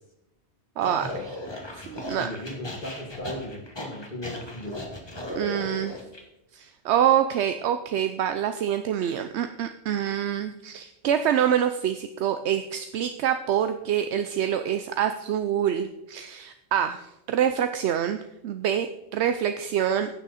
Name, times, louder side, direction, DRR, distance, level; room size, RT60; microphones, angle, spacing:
sound 1, 0.8-6.2, left 1 dB, 25° left, 1.5 m, -37 dB
voice 1, 0.8-1.4 1.7-2.3 5.4-6.0 6.5-20.1, right 9 dB, 80° right, 9 dB, 0.9 m, -26 dB
voice 2, 2.2-4.9, left 1 dB, 45° left, -1 dB, 2.5 m, -37 dB
15.5 x 6.2 x 4.2 m, 0.89 s
omnidirectional pair, 1.1 m